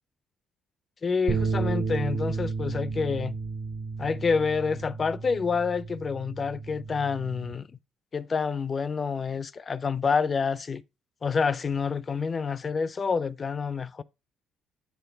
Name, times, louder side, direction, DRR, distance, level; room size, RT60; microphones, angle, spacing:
voice 1, 1.0-3.4 4.0-7.7 8.1-10.8 11.2-14.0, left 5 dB, 40° left, 0.4 m, -28 dB
sound 1, 1.3-7.5, right 4 dB, 80° right, 1.5 m, -32 dB
8.2 x 3.8 x 3.4 m
cardioid pair, 85°, 0 cm